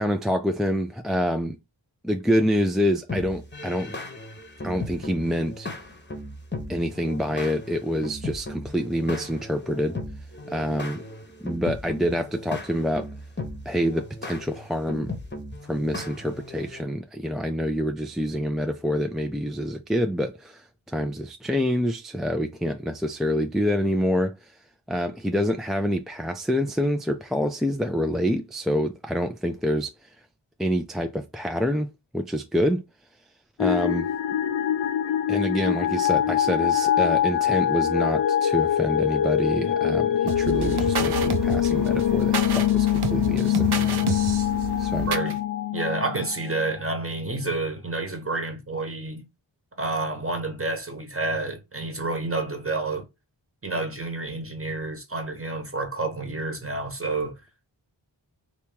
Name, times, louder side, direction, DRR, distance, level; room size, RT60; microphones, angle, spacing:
voice 1, 0.0-1.6 2.0-4.0 4.6-5.7 6.7-10.0 10.5-11.0 11.4-13.1 13.7-15.1 15.7-24.5 24.9-29.9 30.6-31.9 32.1-32.8 33.6-34.1 35.3-44.2 44.8-45.1, equal, ahead, 0.4 m, -26 dB
sound 1, 3.1-16.8, left 2 dB, 25° left, 0.9 m, -37 dB
sound 2, 33.6-46.7, left 11 dB, 70° left, 0.5 m, -24 dB
sound 3, 40.3-45.4, right 6 dB, 55° right, 0.6 m, -30 dB
voice 2, 45.0-45.4 45.7-49.3 49.8-53.1 53.6-57.4, right 2 dB, 30° right, 1.1 m, -29 dB
2.9 x 2.9 x 3.5 m
wide cardioid pair, 50°, 46 cm